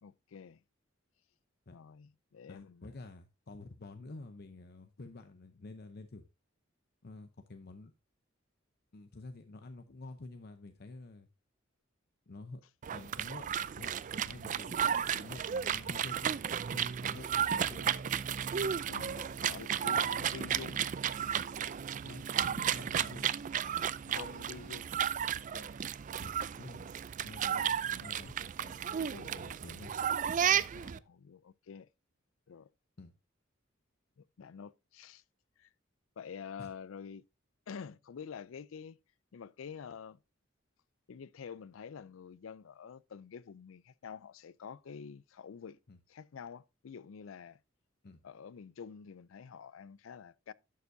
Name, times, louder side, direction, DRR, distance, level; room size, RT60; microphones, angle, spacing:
voice 1, 0.0-0.6 1.7-2.9 18.8-20.9 24.1-24.9 25.3-25.7 30.7-31.9 32.5-32.7 34.2-35.2 35.6-35.7 36.2-37.2 37.7-39.0 39.3-40.2 41.1-45.8 46.1-47.6 48.2-50.5, left 6 dB, 80° left, 0.4 m, -48 dB
voice 2, 2.5-6.3 7.0-7.9 8.9-11.3 12.3-12.6 12.9-13.5 13.8-16.3 16.7-17.9 19.0-19.2 22.0-23.3 26.2-26.9 27.2-29.9 33.0-33.1 36.6-36.7 45.9-46.0 48.0-48.2, left 2 dB, 50° left, 0.7 m, -49 dB
sound 1, 12.8-31.0, right 8 dB, 40° right, 0.4 m, -33 dB
11.0 x 6.9 x 2.6 m
head